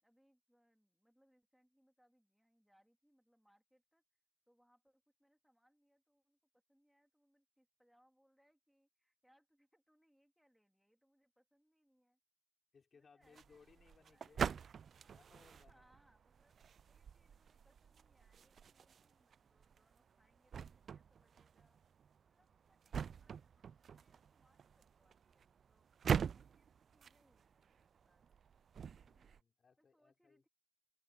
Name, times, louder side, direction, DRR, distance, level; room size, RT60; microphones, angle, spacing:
voice 1, 0.0-12.2 12.9-14.4 15.0-15.2 15.6-16.6 16.9-21.8 22.3-25.9 26.3-28.3 29.8-30.5, equal, ahead, 2.8 m, -76 dB
voice 2, 12.7-14.6 15.1-15.9 28.9-30.4, left 5 dB, 40° left, 4.2 m, -67 dB
sound 1, 13.2-29.4, right 7 dB, 50° right, 0.3 m, -44 dB
open air
cardioid pair, 90°, 0 cm